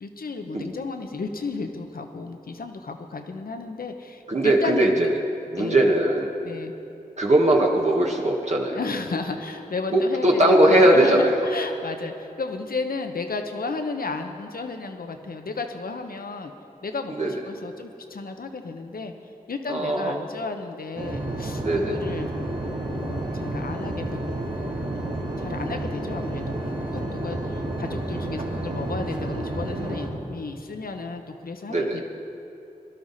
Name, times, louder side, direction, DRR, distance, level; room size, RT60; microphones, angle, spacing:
voice 1, 0.0-5.1 5.6-5.9 6.4-6.7 8.7-16.5 16.8-19.1 19.5-22.3 22.9-24.2 24.6-32.0, left 4 dB, 75° left, 6 dB, 1.0 m, -33 dB
voice 2, 4.3-5.2 5.5-6.3 7.2-8.8 9.9-11.3 17.1-17.3 19.7-20.2 21.6-22.0 31.7-32.0, right 1 dB, 50° right, -1 dB, 1.6 m, -20 dB
sound 1, 21.0-30.1, right 1 dB, 70° right, 2.6 m, -30 dB
19.5 x 12.0 x 4.2 m, 2.7 s
cardioid pair, 40°, 15 cm